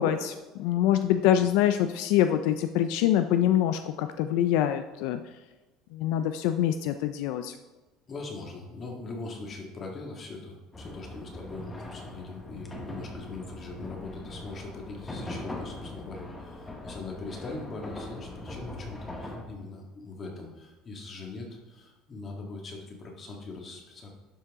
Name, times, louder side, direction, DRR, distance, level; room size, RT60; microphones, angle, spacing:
voice 1, 0.0-5.2 5.9-7.5, left 11 dB, 75° left, 9 dB, 0.4 m, -25 dB
voice 2, 8.1-24.1, left 3 dB, 30° left, 0 dB, 1.9 m, -41 dB
sound 1, 10.7-19.4, left 1 dB, 10° left, 1.2 m, -41 dB
11.5 x 4.6 x 3.6 m, 1.2 s
cardioid pair, 130°, 0 cm